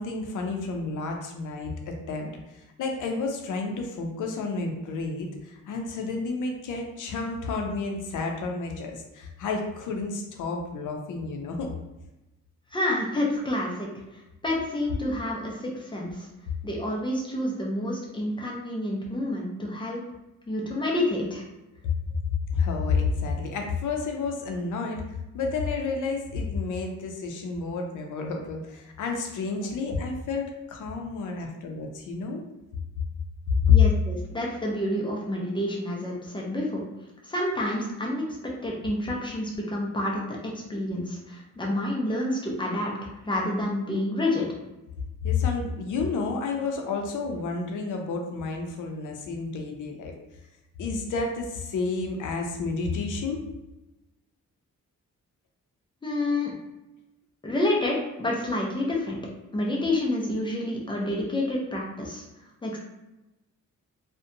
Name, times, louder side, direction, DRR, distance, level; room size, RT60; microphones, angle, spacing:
voice 1, 0.0-11.7 22.5-32.4 33.7-33.8 45.2-50.1 50.8-53.4, left 4 dB, 75° left, 2 dB, 0.5 m, -30 dB
voice 2, 12.7-13.9 14.4-16.3 16.6-20.0 20.5-21.4 29.6-29.7 33.7-36.8 37.2-38.4 38.6-44.5 56.0-56.5 57.4-59.2 59.5-62.2 62.6-62.8, left 1 dB, 15° left, -3 dB, 0.4 m, -28 dB
2.6 x 2.1 x 2.5 m, 0.98 s
wide cardioid pair, 170°, 31 cm